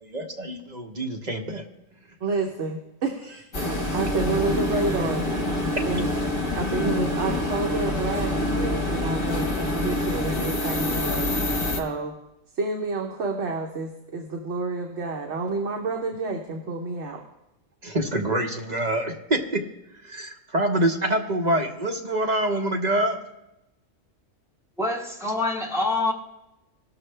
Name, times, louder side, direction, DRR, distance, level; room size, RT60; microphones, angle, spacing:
voice 1, 0.0-1.6 17.8-19.6 20.0-23.2, right 1 dB, 35° right, 2 dB, 0.9 m, -26 dB
voice 2, 2.2-3.5 3.9-5.3 5.9-6.1 6.5-11.3 11.8-12.1 12.5-17.2, right 3 dB, 60° right, 2 dB, 1.2 m, -29 dB
sound 1, 3.5-11.8, left 1 dB, 45° left, 1.4 m, -26 dB
voice 3, 24.8-26.1, left 2 dB, ahead, -2 dB, 1.3 m, -25 dB
18.5 x 6.4 x 3.3 m, 0.93 s
omnidirectional pair, 1.4 m